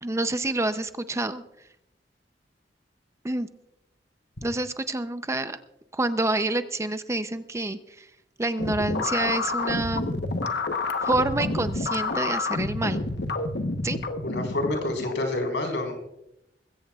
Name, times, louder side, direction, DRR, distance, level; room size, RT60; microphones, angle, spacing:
voice 1, 0.0-1.4 3.2-3.5 4.4-5.6 5.9-8.1 8.4-10.2 11.0-13.0 13.8-14.0, right 2 dB, 15° right, 10 dB, 0.6 m, -27 dB
sound 1, 8.6-15.3, left 3 dB, 65° left, 1.0 m, -29 dB
voice 2, 14.2-15.9, left 2 dB, 80° left, 3 dB, 4.3 m, -28 dB
21.0 x 16.0 x 2.4 m, 0.83 s
head